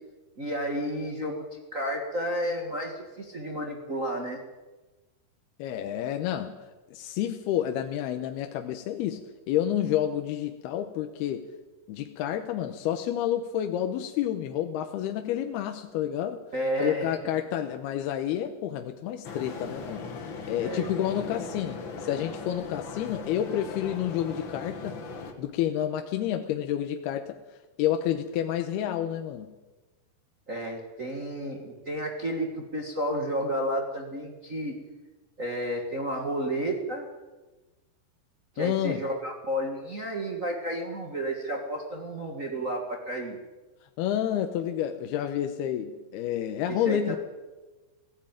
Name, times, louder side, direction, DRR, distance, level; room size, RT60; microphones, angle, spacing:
voice 1, 0.4-4.4 16.5-17.1 20.6-20.9 30.5-34.7 35.4-37.0 38.5-43.4 46.7-47.2, right 1 dB, 75° right, 1 dB, 0.7 m, -31 dB
voice 2, 5.6-11.5 11.9-16.4 16.8-25.0 25.4-27.4 27.8-29.5 38.6-39.0 44.0-47.2, left 11 dB, 75° left, 6 dB, 2.8 m, -29 dB
sound 1, 19.2-25.3, left 4 dB, 50° left, 1.5 m, -39 dB
17.5 x 17.0 x 9.0 m, 1.2 s
omnidirectional pair, 4.8 m